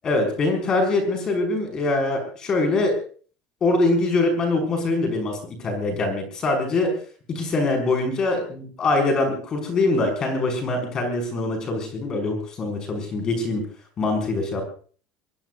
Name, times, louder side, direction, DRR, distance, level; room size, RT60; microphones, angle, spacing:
voice 1, 0.0-3.0 3.6-6.9 7.3-13.6 14.0-14.6, left 2 dB, 25° left, 3 dB, 6.0 m, -23 dB
23.5 x 21.5 x 2.7 m, 0.42 s
cardioid pair, 165°, 3 cm